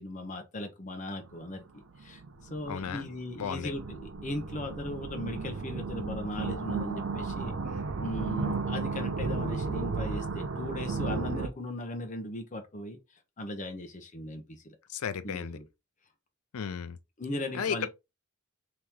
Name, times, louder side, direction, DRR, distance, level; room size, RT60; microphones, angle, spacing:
voice 1, 0.0-2.2 2.5-13.0 13.4-14.8 15.2-15.7 17.2-17.9, left 1 dB, 35° left, 0.7 m, -38 dB
sound 1, 1.2-1.4 2.0-11.5, right 4 dB, 65° right, 0.5 m, -34 dB
voice 2, 2.7-3.1 3.4-3.7 14.9-15.6 16.5-17.0 17.5-17.9, left 7 dB, 75° left, 0.4 m, -34 dB
2.9 x 2.9 x 3.6 m
head